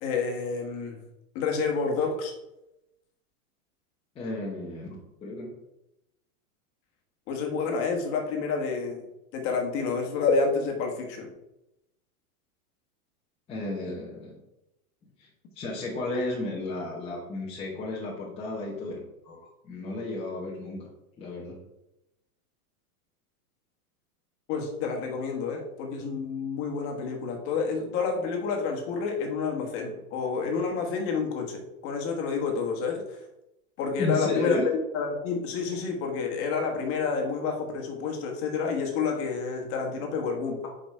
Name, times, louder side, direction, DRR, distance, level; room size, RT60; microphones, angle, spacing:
voice 1, 0.0-1.0 1.3-2.3 7.3-9.0 9.3-11.3 24.5-33.2 33.8-40.6, left 5 dB, 30° left, 1 dB, 1.5 m, -29 dB
voice 2, 4.1-4.9 5.2-5.5 13.5-14.4 15.2-15.3 15.5-18.9 19.2-20.9 21.2-21.6 34.0-34.6, left 2 dB, 15° left, -5 dB, 1.0 m, -33 dB
7.0 x 5.1 x 4.4 m, 0.89 s
supercardioid pair, 165°, 44 cm